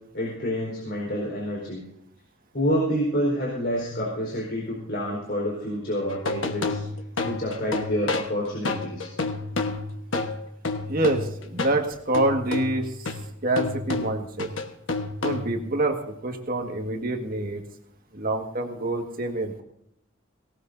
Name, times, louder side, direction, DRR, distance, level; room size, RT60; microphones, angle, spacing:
voice 1, 0.1-1.8 2.5-6.8 7.2-9.1, equal, 55° left, -4 dB, 4.3 m, -28 dB
sound 1, 6.1-11.8 12.1-15.7, left 3 dB, 70° left, 1.3 m, -30 dB
voice 2, 10.9-13.1 13.4-14.5 15.2-17.6 18.1-19.6, right 2 dB, 45° right, 4 dB, 1.7 m, -26 dB
18.5 x 18.0 x 2.7 m, 0.76 s
head